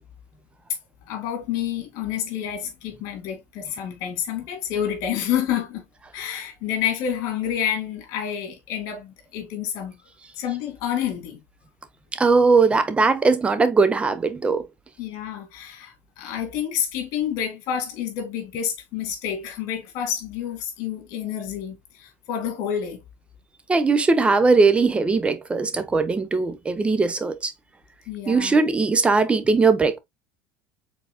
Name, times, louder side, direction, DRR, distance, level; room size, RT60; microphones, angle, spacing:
voice 1, 1.1-5.8 6.1-10.0 10.4-11.4 15.0-23.0 28.1-28.6, left 9 dB, 65° left, 2.1 m, -29 dB
voice 2, 12.2-14.7 23.7-27.5 28.3-30.0, right 4 dB, 20° right, 0.8 m, -19 dB
4.6 x 4.1 x 2.2 m
supercardioid pair, 105°, 6 cm